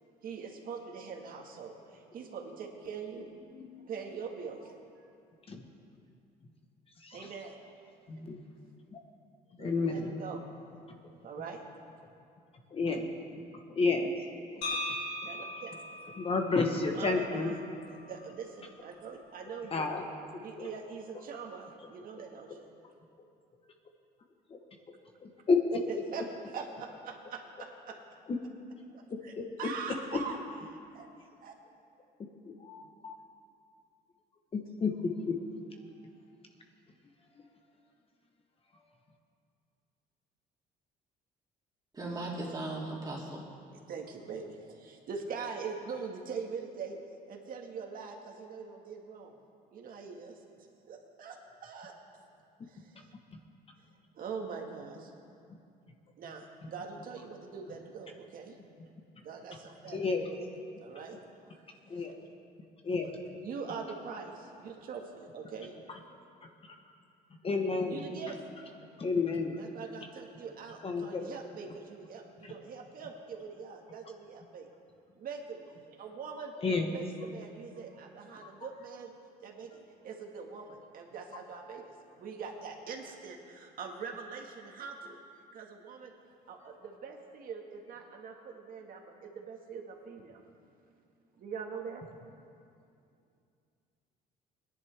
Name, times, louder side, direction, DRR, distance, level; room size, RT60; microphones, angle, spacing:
voice 1, 0.2-3.3 3.8-5.2 7.1-7.6 9.6-10.4 11.2-11.6 15.2-15.9 16.9-17.6 17.9-19.9 20.4-22.6 26.1-26.3 26.5-28.0 28.9-29.3 29.6-30.4 30.7-31.5 43.7-47.0 47.3-49.3 49.7-50.4 50.9-51.9 52.7-53.1 54.1-55.1 56.2-58.6 59.2-60.1 60.8-61.2 61.9-62.1 63.4-65.7 67.9-68.4 69.6-74.7 75.2-75.6 76.0-76.5 76.9-79.1 79.4-85.2 85.5-86.1 86.5-90.4 91.4-92.0, right 5 dB, 55° right, 2 dB, 1.8 m, -43 dB
voice 2, 3.5-3.9 5.5-5.6 7.0-7.3 8.1-8.4 8.9-9.0 9.6-10.2 12.7-13.1 13.7-14.1 16.2-17.5 19.7-20.0 20.3-20.7 24.5-24.6 25.2-26.0 28.3-28.4 29.3-29.5 31.1-31.2 32.4-33.1 34.5-35.4 37.4-37.5 53.3-53.4 59.9-60.3 61.9-62.2 62.8-63.2 65.9-66.0 66.4-66.8 67.4-68.1 69.0-69.6 70.8-71.4 72.4-72.5 76.6-76.9, left 4 dB, 35° left, 3 dB, 1.2 m, -31 dB
sound 1, 14.6-18.7, left 1 dB, 85° left, 2.6 m, -40 dB
voice 3, 41.9-43.5, right 2 dB, 25° right, -4 dB, 3.0 m, -37 dB
20.0 x 10.5 x 3.5 m, 2.4 s
cardioid pair, 110°, 17 cm